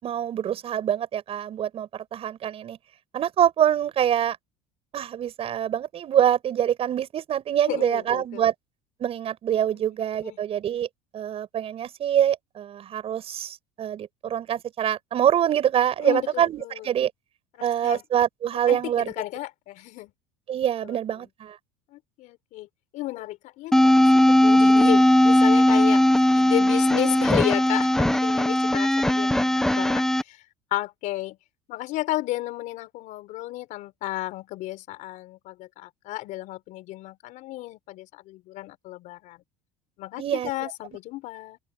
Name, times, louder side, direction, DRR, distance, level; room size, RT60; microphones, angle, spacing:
voice 1, 0.0-2.8 3.1-4.4 4.9-8.5 9.0-10.9 11.1-17.1 17.6-19.1 20.5-21.6 40.2-40.5, right 10 dB, 40° right, 6.1 m, -25 dB
voice 2, 7.7-8.5 9.8-9.9 10.2-10.4 16.0-16.9 17.5-18.0 18.7-20.1 20.8-21.0 21.9-22.7 22.9-26.0 26.3-30.4 30.7-31.4 31.7-39.4 40.0-41.6, left 17 dB, 60° left, 4.9 m, -33 dB
sound 1, 23.7-30.2, left 1 dB, 5° left, 1.3 m, -18 dB
open air
supercardioid pair, 110°, 15 cm